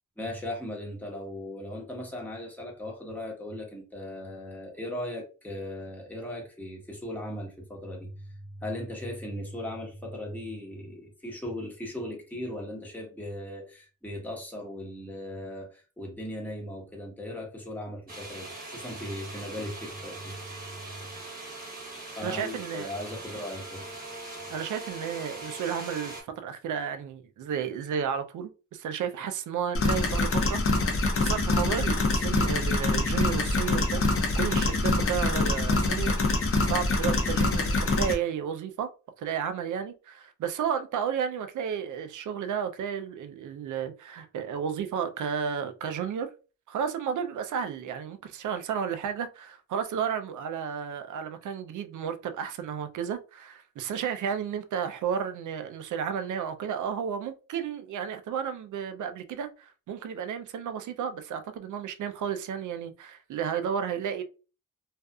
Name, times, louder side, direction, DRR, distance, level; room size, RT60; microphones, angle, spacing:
voice 1, 0.2-20.4 20.7-20.8 22.2-23.9, left 1 dB, 5° left, 1.0 m, -38 dB
sound 1, 18.1-26.2, right 2 dB, 30° right, 1.1 m, -41 dB
voice 2, 22.2-22.9 24.5-34.0 34.4-38.9 39.2-46.3 46.7-64.2, right 8 dB, 70° right, 0.5 m, -32 dB
sound 2, 29.7-38.1, left 2 dB, 45° left, 0.8 m, -25 dB
2.6 x 2.4 x 2.3 m
cardioid pair, 80°, 31 cm